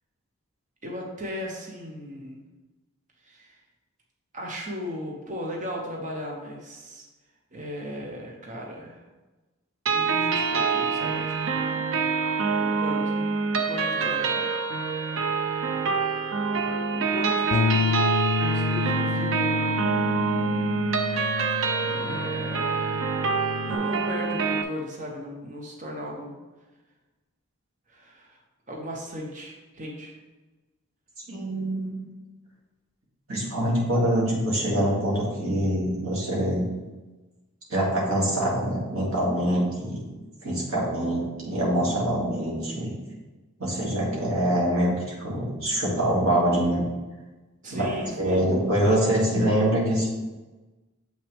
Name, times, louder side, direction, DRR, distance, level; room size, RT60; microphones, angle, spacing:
voice 1, 0.8-2.4 3.2-3.6 4.3-7.1 7.5-9.0 9.9-11.6 12.6-13.3 13.6-14.5 16.7-18.0 18.5-19.8 21.8-23.2 23.7-26.3 27.9-28.4 28.7-30.2 47.6-48.5, equal, 35° right, 0 dB, 1.0 m, -37 dB
sound 1, 9.9-24.6, right 5 dB, 60° right, 0.5 m, -26 dB
Bass guitar, 17.5-23.8, left 5 dB, 75° left, 0.3 m, -29 dB
voice 2, 31.3-32.0 33.3-36.6 37.7-40.0 40.4-42.9 43.6-44.9 45.2-46.8 47.7-50.1, right 1 dB, 75° right, -5 dB, 2.5 m, -24 dB
7.4 x 5.8 x 3.5 m, 1.2 s
head